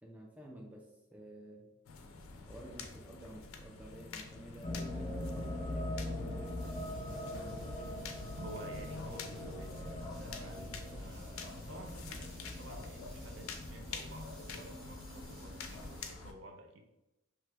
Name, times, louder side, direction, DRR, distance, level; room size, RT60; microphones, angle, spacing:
voice 1, 0.0-0.9 1.1-1.7 2.5-8.0, right 1 dB, 5° right, -1 dB, 0.3 m, -52 dB
sound 1, 1.9-16.3, left 4 dB, 85° left, 0.4 m, -47 dB
sound 2, 4.6-16.0, left 1 dB, 40° left, 0.6 m, -42 dB
sound 3, 6.6-16.0, equal, 25° right, 0.8 m, -57 dB
voice 2, 8.4-16.9, right 2 dB, 65° right, 3 dB, 0.5 m, -51 dB
2.8 x 2.3 x 3.2 m, 0.96 s
head